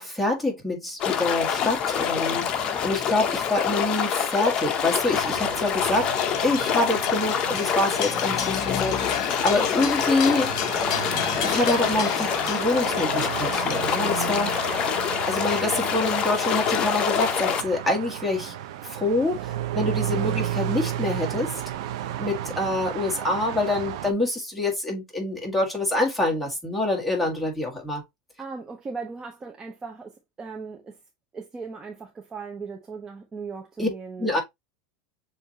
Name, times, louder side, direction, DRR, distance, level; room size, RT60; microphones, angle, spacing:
voice 1, 0.0-6.1 6.4-10.5 11.3-14.8 15.3-18.5 18.8-21.6 22.2-28.0 33.8-33.9 34.2-34.4, left 2 dB, ahead, 1.7 m, -26 dB
sound 1, 1.0-17.6, left 8 dB, 35° left, 0.7 m, -26 dB
sound 2, 5.1-24.1, right 12 dB, 75° right, 0.7 m, -33 dB
sound 3, 6.2-14.3, left 9 dB, 70° left, 0.9 m, -34 dB
voice 2, 28.4-31.0 31.3-34.4, right 4 dB, 20° right, 0.7 m, -38 dB
7.0 x 2.6 x 2.8 m
supercardioid pair, 140°, 3 cm